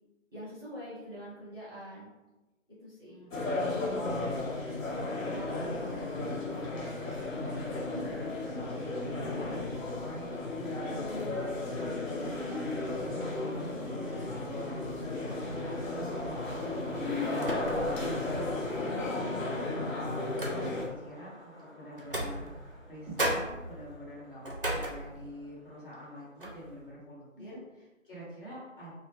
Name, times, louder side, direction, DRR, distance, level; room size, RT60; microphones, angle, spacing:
voice 1, 0.3-2.1 2.8-3.2 7.8-8.1 27.4-27.6, equal, 20° right, -11 dB, 0.7 m, -44 dB
voice 2, 3.0-3.5 3.9-11.1 11.3-15.2 15.7-19.2 19.5-22.5 22.9-29.0, equal, 40° left, -8 dB, 1.1 m, -46 dB
sound 1, 3.3-20.9, left 2 dB, 75° left, 0.9 m, -34 dB
Skateboard, 12.1-26.9, equal, 20° left, 1.0 m, -45 dB
sound 2, 16.0-16.3 17.4-18.1 18.5-18.6 19.5-21.0 22.0-22.9 23.2-25.5 25.9-26.1 26.4-26.7, right 1 dB, 45° right, 0.4 m, -36 dB
2.3 x 2.1 x 2.9 m, 1.1 s
figure-of-eight pair, 160°, 39 cm